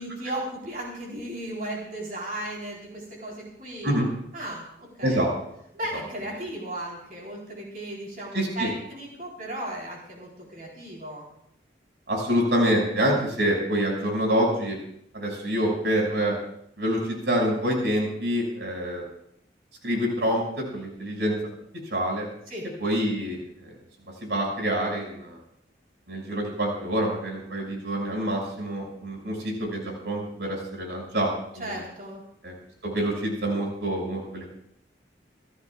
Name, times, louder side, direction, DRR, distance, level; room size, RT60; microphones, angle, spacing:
voice 1, 0.0-4.0 4.3-5.2 5.7-11.3 22.5-22.7 31.6-32.2, right 1 dB, 50° right, -3 dB, 4.0 m, -35 dB
voice 2, 8.3-8.7 12.1-14.8 15.1-16.4 16.8-19.0 19.8-21.3 21.9-22.3 22.8-23.7 24.2-25.4 26.1-31.8 32.4-32.5 32.8-34.5, equal, 75° right, -1 dB, 6.0 m, -26 dB
28.5 x 13.0 x 2.4 m, 0.72 s
head